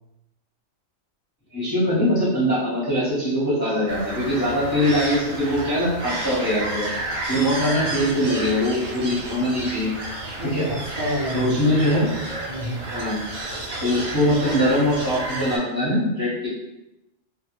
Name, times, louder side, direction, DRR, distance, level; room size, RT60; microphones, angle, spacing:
voice 1, 1.5-6.9 7.3-9.9 10.5-10.6 11.3-12.1 12.9-13.3 13.8-16.5, equal, 25° left, -9 dB, 0.6 m, -22 dB
sound 1, 3.9-15.6, right 2 dB, 75° right, 0.9 m, -31 dB
voice 2, 7.6-8.3 10.4-12.1 12.5-12.9, equal, 40° right, -10 dB, 0.5 m, -30 dB
2.1 x 2.0 x 2.9 m, 0.93 s
omnidirectional pair, 1.2 m